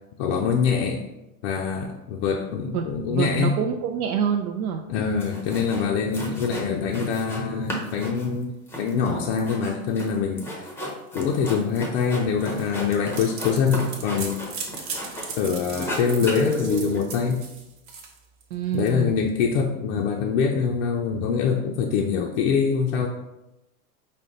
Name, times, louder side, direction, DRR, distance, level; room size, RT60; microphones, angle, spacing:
voice 1, 0.2-1.0 1.4-3.5 4.9-10.5 11.1-14.4 15.4-17.4 18.7-23.1, left 6 dB, 45° left, 0 dB, 0.5 m, -24 dB
voice 2, 2.7-4.8 18.5-19.2, right 8 dB, 75° right, 3 dB, 0.6 m, -26 dB
sound 1, 4.9-5.0 5.2-5.9 6.1-7.4 7.7-15.4 15.7-17.0, left 1 dB, 5° left, 0.6 m, -33 dB
sound 2, 12.5-18.9, right 5 dB, 45° right, 1.0 m, -37 dB
5.2 x 2.2 x 3.7 m, 0.97 s
hypercardioid pair, 125°, 44 cm